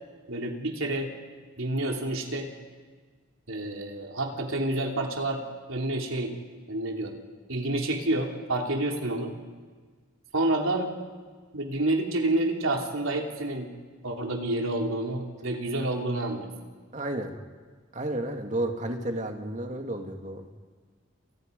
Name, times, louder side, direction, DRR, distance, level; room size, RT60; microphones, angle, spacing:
voice 1, 0.3-1.1 1.6-2.5 3.5-5.4 5.7-6.3 6.7-7.2 7.5-9.3 10.3-10.9 11.5-13.7 14.0-16.5, right 2 dB, 80° right, 1 dB, 3.3 m, -28 dB
voice 2, 16.9-17.3 17.9-20.4, right 1 dB, 35° right, 4 dB, 2.3 m, -32 dB
29.5 x 29.5 x 5.4 m, 1.5 s
head